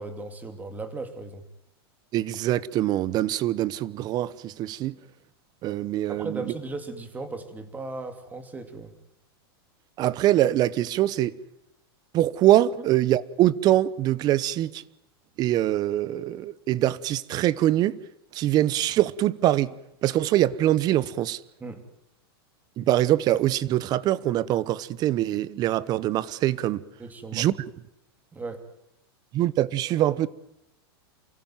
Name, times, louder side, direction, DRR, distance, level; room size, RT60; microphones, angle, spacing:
voice 1, 0.0-1.4 6.1-8.9 21.6-21.8 27.0-27.5 28.3-28.6, right 3 dB, 10° right, 3.1 m, -36 dB
voice 2, 2.1-4.9 5.6-6.5 10.0-11.3 12.1-14.8 15.4-18.0 18.3-19.7 20.0-21.4 22.8-26.8 27.3-27.5 29.3-30.3, right 13 dB, 30° right, 1.0 m, -23 dB
28.5 x 16.0 x 9.3 m
supercardioid pair, 145°, 13 cm